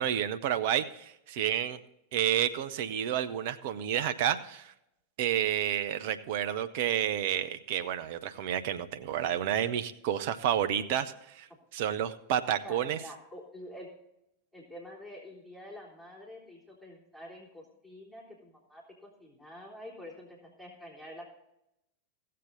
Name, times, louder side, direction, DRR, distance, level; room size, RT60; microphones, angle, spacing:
voice 1, 0.0-1.8 2.1-4.7 5.2-13.0, right 10 dB, 50° right, 10 dB, 0.7 m, -30 dB
voice 2, 12.6-13.9 14.5-21.3, left 1 dB, 5° right, -4 dB, 3.6 m, -47 dB
16.5 x 7.6 x 3.9 m, 0.84 s
figure-of-eight pair, 90°, 0 cm